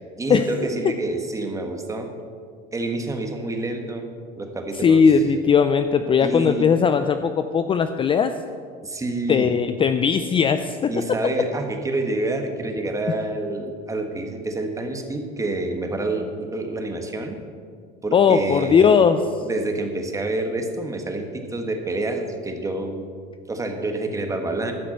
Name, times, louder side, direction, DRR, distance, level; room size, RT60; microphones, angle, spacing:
voice 1, 0.0-2.1 2.7-4.1 4.4-5.0 6.2-6.7 8.8-9.5 10.9-17.4 18.0-18.9 19.4-23.1 23.5-24.7, right 2 dB, 15° right, 4 dB, 1.4 m, -28 dB
voice 2, 4.8-8.3 9.3-10.9 18.1-19.2, left 6 dB, 25° left, 9 dB, 0.4 m, -18 dB
12.5 x 5.9 x 7.7 m, 2.1 s
supercardioid pair, 110°, 21 cm